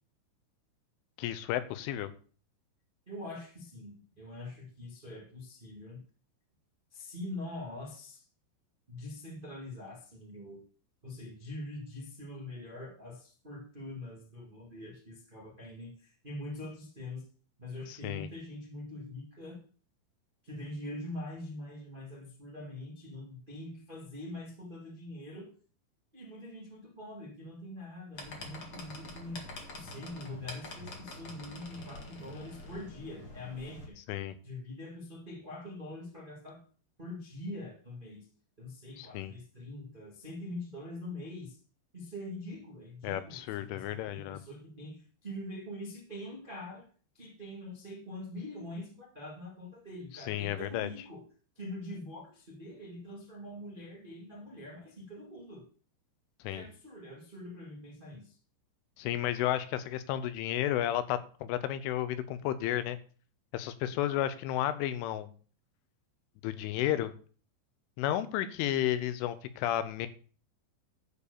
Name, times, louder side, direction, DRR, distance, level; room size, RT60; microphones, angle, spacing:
voice 1, 1.2-2.1 18.0-18.3 34.1-34.4 39.0-39.3 43.0-44.4 50.3-50.9 56.4-56.6 59.0-63.0 63.5-65.3 66.4-67.1 68.0-70.1, left 12 dB, 85° left, 13 dB, 3.2 m, -32 dB
voice 2, 3.1-6.0 6.9-8.2 8.9-10.6 11.0-17.2 17.6-19.6 20.4-25.5 26.1-29.5 29.7-34.0 34.4-36.6 37.0-38.3 38.6-41.6 41.9-46.8 47.1-51.2 51.5-55.7 56.5-58.4, left 1 dB, 50° right, -2 dB, 0.5 m, -44 dB
sound 1, 28.1-33.9, left 2 dB, 50° left, 1.5 m, -46 dB
12.0 x 4.7 x 6.8 m, 0.41 s
omnidirectional pair, 5.6 m